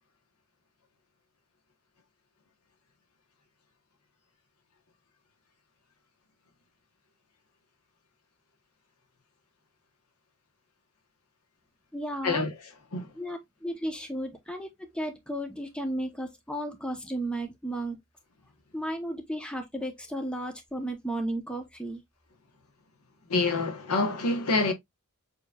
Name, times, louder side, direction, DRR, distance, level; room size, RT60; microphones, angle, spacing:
voice 1, 11.9-12.5 13.1-18.0 18.7-22.0, right 1 dB, 5° left, 0.8 m, -34 dB
voice 2, 23.3-24.7, left 3 dB, 90° left, 1.1 m, -26 dB
6.7 x 3.0 x 2.3 m
head